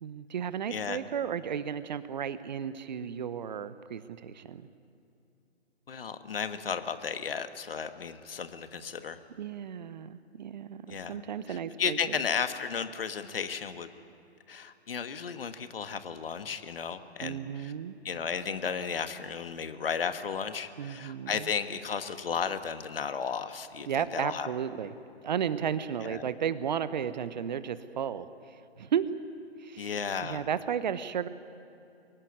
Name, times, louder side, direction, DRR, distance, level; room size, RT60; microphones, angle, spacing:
voice 1, 0.0-4.7 9.4-12.2 17.2-18.0 20.8-21.5 23.9-24.9 25.2-29.1 29.6-29.9 30.2-31.3, right 8 dB, 40° right, 14 dB, 0.9 m, -34 dB
voice 2, 5.9-9.2 10.9-11.2 11.5-13.9 14.5-17.7 18.0-24.5 26.0-26.3 29.8-30.4, left 6 dB, 55° left, 10 dB, 1.5 m, -34 dB
24.0 x 17.0 x 9.6 m, 2.6 s
figure-of-eight pair, 135°, 33 cm